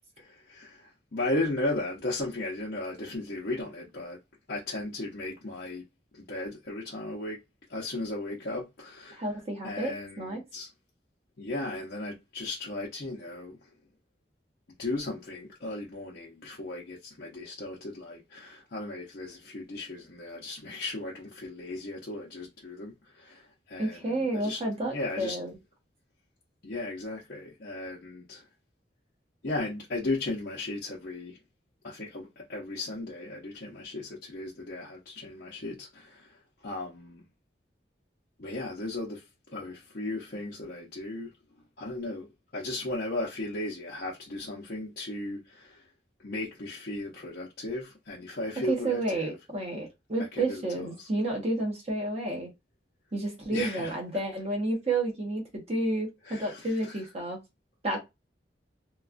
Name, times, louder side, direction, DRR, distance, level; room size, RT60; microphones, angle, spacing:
voice 1, 0.3-4.2 4.5-5.8 6.1-7.4 7.7-10.7 11.4-13.7 14.8-25.4 26.6-28.5 29.4-31.4 31.8-37.3 38.4-41.3 41.8-42.3 42.5-45.9 46.2-49.3 50.3-51.1 53.5-54.0 56.2-57.0, left 2 dB, 55° left, 0.7 m, -36 dB
voice 2, 9.2-10.4 23.8-25.5 48.7-52.5 53.1-57.4 57.8-58.0, right 2 dB, 40° right, 1.0 m, -31 dB
3.0 x 2.3 x 2.4 m
head